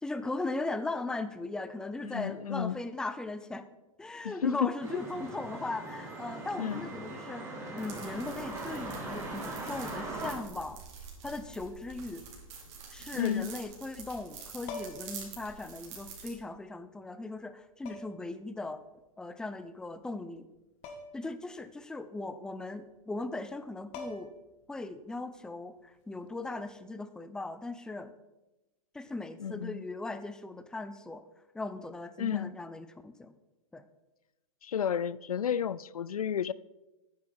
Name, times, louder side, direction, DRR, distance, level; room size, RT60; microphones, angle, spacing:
voice 1, 0.0-3.7 4.0-7.5 7.7-10.8 11.2-12.2 12.9-18.8 19.2-20.5 21.1-24.3 24.7-28.1 28.9-31.2 31.5-33.3 33.7-33.9, left 2 dB, 5° left, 0.5 m, -38 dB
voice 2, 2.0-2.8 4.2-4.7 6.6-6.8 13.1-13.5 29.4-29.8 32.2-32.5 34.6-36.5, left 8 dB, 90° left, 0.4 m, -32 dB
sound 1, 4.8-10.3, right 2 dB, 15° right, 3.0 m, -40 dB
sound 2, 7.8-16.3, right 5 dB, 50° right, 3.4 m, -47 dB
sound 3, 14.7-15.2 16.6-16.7 17.8-18.3 20.8-21.3 21.6-21.7 23.5-23.6 23.9-24.5 26.5-26.7, left 3 dB, 35° left, 1.6 m, -43 dB
9.6 x 9.4 x 4.4 m
hypercardioid pair, 120°, 18 cm